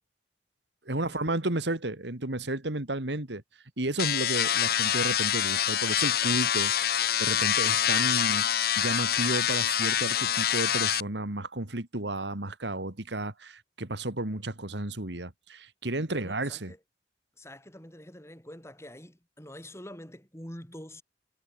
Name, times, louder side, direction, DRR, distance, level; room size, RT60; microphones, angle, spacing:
voice 1, 0.9-3.4 3.8-16.7, right 2 dB, 75° right, 2.4 m, -32 dB
sound 1, 4.0-11.0, left 10 dB, 55° left, 1.0 m, -26 dB
voice 2, 16.1-16.8 17.4-21.0, left 1 dB, 15° left, 7.1 m, -46 dB
head